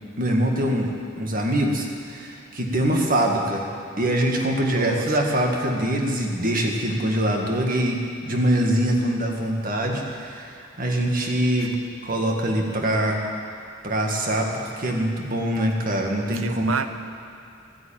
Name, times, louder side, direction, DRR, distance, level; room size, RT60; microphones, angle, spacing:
voice 1, 0.2-3.7 4.0-11.8 12.0-13.2 13.8-16.8, right 1 dB, 45° right, 1 dB, 1.9 m, -24 dB
voice 2, 4.7-5.0 16.3-16.9, right 5 dB, 80° right, 9 dB, 0.9 m, -28 dB
13.5 x 9.6 x 8.9 m, 2.6 s
head